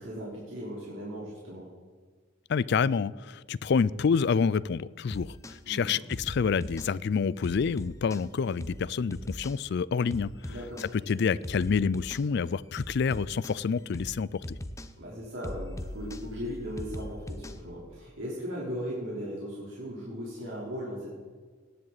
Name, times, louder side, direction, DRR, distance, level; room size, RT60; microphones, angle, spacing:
voice 1, 0.0-1.7 5.7-6.0 10.5-10.9 15.0-21.1, equal, 80° right, 3.7 m, -38 dB
voice 2, 2.5-10.3 10.8-14.6, left 5 dB, 60° left, 0.4 m, -28 dB
sound 1, 5.1-5.6 6.1-6.9 7.4-8.2 8.6-8.8 9.1-9.6 10.1-10.9 11.4-12.2 12.8-13.6 13.9-14.2 14.4-14.9 15.4-17.6, left 1 dB, 15° left, 0.7 m, -39 dB
18.0 x 10.5 x 4.0 m
head